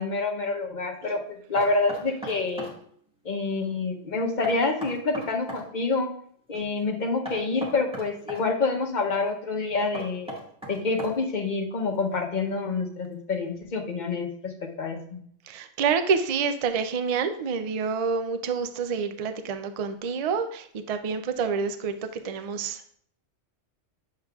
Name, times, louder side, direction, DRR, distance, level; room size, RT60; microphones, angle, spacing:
voice 1, 0.0-2.7 3.2-6.1 6.5-10.3 10.7-15.2, left 3 dB, 40° left, 2 dB, 0.9 m, -27 dB
Knock, 1.5-2.8 4.4-5.7 7.2-8.4 9.9-11.4, right 1 dB, 5° right, 1.5 m, -37 dB
voice 2, 15.5-23.0, right 5 dB, 65° right, 8 dB, 0.3 m, -28 dB
8.1 x 6.6 x 2.3 m, 0.63 s
omnidirectional pair, 1.3 m